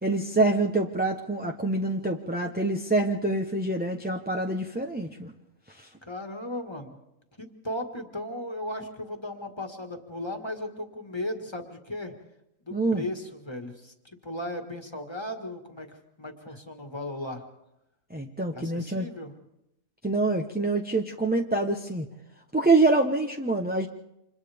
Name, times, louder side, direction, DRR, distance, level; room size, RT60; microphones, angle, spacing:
voice 1, 0.0-5.3 5.8-5.9 12.7-13.0 18.1-19.1 20.0-22.1 22.5-23.9, right 2 dB, 10° right, 2 dB, 0.7 m, -26 dB
voice 2, 6.0-7.0 7.4-12.1 12.7-17.4 18.5-19.3, left 1 dB, 20° left, 5 dB, 1.8 m, -36 dB
29.5 x 27.0 x 3.5 m, 0.86 s
omnidirectional pair, 1.5 m